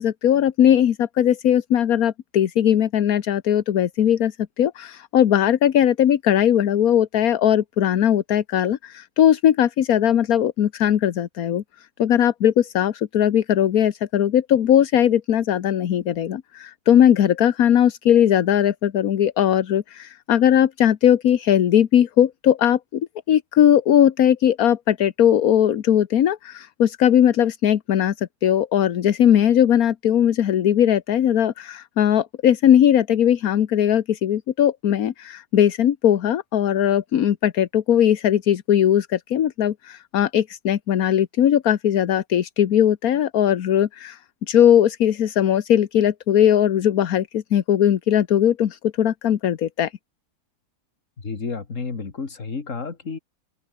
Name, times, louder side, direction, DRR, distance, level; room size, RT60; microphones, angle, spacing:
voice 1, 0.0-11.6 12.0-44.2 44.5-49.9, left 10 dB, 75° left, 1.5 m, -19 dB
voice 2, 51.2-53.2, left 4 dB, 55° left, 2.6 m, -31 dB
open air
omnidirectional pair, 1.6 m